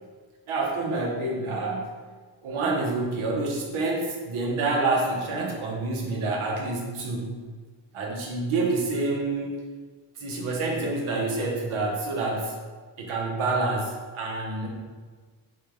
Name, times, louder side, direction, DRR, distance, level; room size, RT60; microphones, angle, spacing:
voice 1, 0.5-1.9 2.4-7.3 7.9-9.7 10.2-12.5 13.0-14.7, right 3 dB, 80° right, -1 dB, 0.8 m, -27 dB
3.9 x 2.3 x 3.3 m, 1.5 s
supercardioid pair, 45°, 48 cm